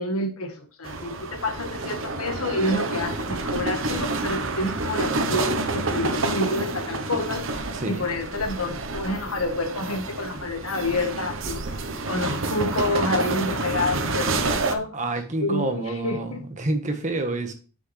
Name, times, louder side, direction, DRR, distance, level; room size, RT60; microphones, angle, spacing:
voice 1, 0.0-11.6 12.1-14.9 15.4-16.4, left 2 dB, 80° left, 1.5 m, -28 dB
sound 1, 0.8-14.8, right 3 dB, 60° right, 1.0 m, -28 dB
voice 2, 7.7-8.1 14.9-17.5, right 2 dB, 35° right, 1.4 m, -28 dB
9.4 x 6.1 x 3.3 m
head